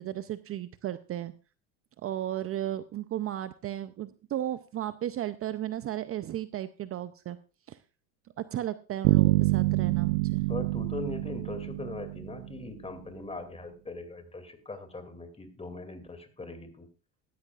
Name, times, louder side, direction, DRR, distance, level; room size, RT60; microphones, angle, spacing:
voice 1, 0.0-1.3 2.0-7.4 7.7-7.8 8.4-10.5, right 12 dB, 35° right, 13 dB, 0.6 m, -34 dB
sound 1, 9.0-12.8, right 21 dB, 85° right, 0.5 m, -26 dB
voice 2, 10.5-16.9, left 3 dB, 15° left, 8 dB, 2.6 m, -40 dB
15.5 x 12.5 x 2.5 m, 0.35 s
supercardioid pair, 85°, 37 cm